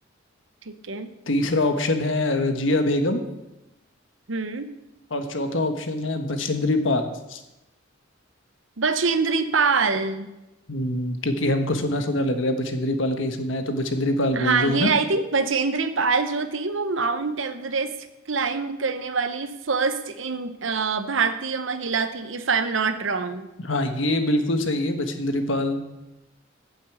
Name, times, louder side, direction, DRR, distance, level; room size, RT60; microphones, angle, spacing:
voice 1, 0.7-1.1 4.3-4.7 8.8-10.3 14.3-17.9 18.3-23.5, right 4 dB, 75° right, 10 dB, 1.0 m, -25 dB
voice 2, 1.3-3.2 5.1-7.4 10.7-14.9 23.6-25.9, left 1 dB, 75° left, 7 dB, 1.4 m, -24 dB
9.3 x 8.4 x 8.0 m, 0.96 s
head